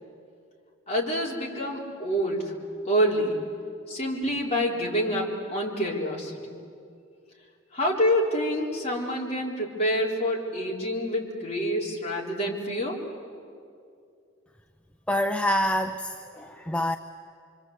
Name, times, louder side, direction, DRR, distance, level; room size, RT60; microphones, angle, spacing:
voice 1, 0.9-2.5 2.8-3.4 3.9-6.6 7.7-13.0, equal, 35° left, -2 dB, 4.0 m, -27 dB
voice 2, 15.1-17.0, left 1 dB, 5° left, 6 dB, 0.6 m, -26 dB
25.5 x 25.0 x 8.1 m, 2.4 s
head